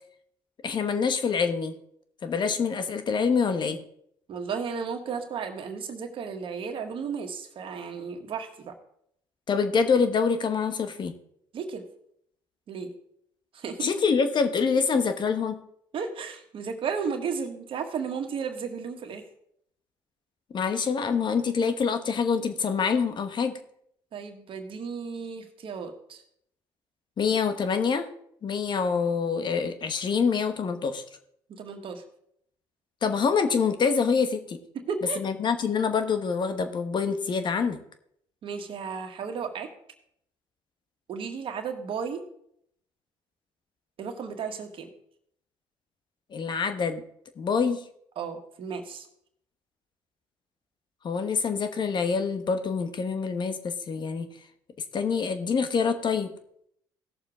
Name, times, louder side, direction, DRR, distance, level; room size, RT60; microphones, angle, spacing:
voice 1, 0.6-1.7 2.2-3.8 9.5-11.1 13.8-15.6 20.5-23.6 27.2-28.1 28.4-31.0 33.0-34.6 35.2-37.8 46.3-47.0 47.4-47.8 51.0-54.3 54.9-56.4, left 5 dB, 45° left, 8 dB, 1.2 m, -26 dB
voice 2, 4.3-8.7 11.5-11.9 12.7-12.9 13.5-13.9 15.9-19.2 24.1-26.2 31.5-32.0 34.7-35.2 38.4-39.7 41.1-42.2 44.0-44.9 48.2-49.1, right 6 dB, 55° right, 5 dB, 1.7 m, -34 dB
17.0 x 6.9 x 3.7 m, 0.71 s
supercardioid pair, 65°, 10 cm